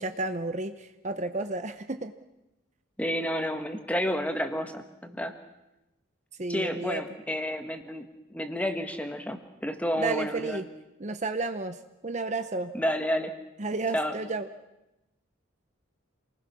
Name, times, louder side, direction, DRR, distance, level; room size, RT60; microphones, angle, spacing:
voice 1, 0.0-2.1 6.4-7.0 10.0-10.6 11.0-11.8 12.0-12.7 13.6-14.5, right 3 dB, 35° right, 9 dB, 0.8 m, -32 dB
voice 2, 3.0-5.3 6.5-10.6 12.7-13.3 13.9-14.1, equal, 5° left, 6 dB, 1.5 m, -30 dB
28.0 x 20.0 x 6.2 m, 0.97 s
head